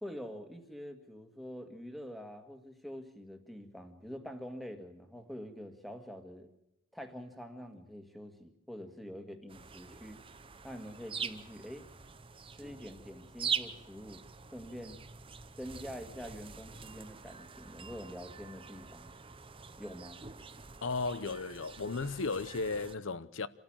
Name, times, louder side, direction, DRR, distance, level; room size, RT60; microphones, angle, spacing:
voice 1, 0.0-6.5 6.9-10.2 10.6-11.9 12.5-14.2 14.5-15.0 15.6-19.2 19.8-20.2, equal, ahead, 1.9 m, -46 dB
sound 1, 9.5-22.9, right 6 dB, 25° right, 0.8 m, -44 dB
voice 2, 20.8-23.5, left 3 dB, 65° left, 0.8 m, -35 dB
27.0 x 13.5 x 8.9 m
head